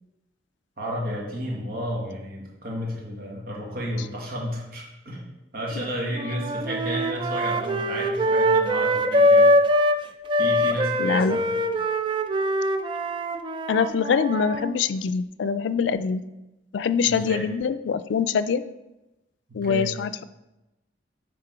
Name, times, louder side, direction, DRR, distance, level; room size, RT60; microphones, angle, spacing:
voice 1, 0.8-5.2 5.5-9.5 10.3-11.4 17.0-17.4 19.5-19.9, equal, 55° right, -3 dB, 1.5 m, -32 dB
sound 1, 6.1-10.0 10.3-14.7, equal, 30° right, 0.3 m, -22 dB
voice 2, 11.0-11.4 13.7-16.2 16.7-18.6 19.5-20.2, left 6 dB, 80° left, 14 dB, 0.3 m, -24 dB
7.5 x 3.6 x 4.6 m, 0.97 s
head